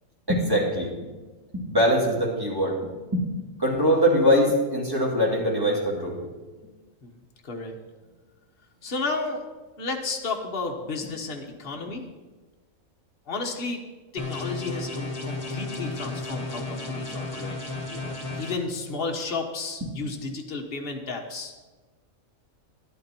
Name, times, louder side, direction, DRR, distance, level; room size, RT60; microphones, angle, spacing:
voice 1, 0.3-0.9 1.5-2.7 3.1-3.2 3.6-6.2, equal, 15° right, -4 dB, 2.7 m, -22 dB
voice 2, 7.4-7.7 8.8-9.4 9.8-12.0 13.3-13.8 14.1-17.6 17.9-21.5, left 3 dB, 45° left, 2 dB, 1.5 m, -32 dB
sound 1, 14.2-18.5, left 2 dB, 25° left, 1.7 m, -33 dB
12.0 x 11.5 x 4.5 m, 1.3 s
omnidirectional pair, 1.4 m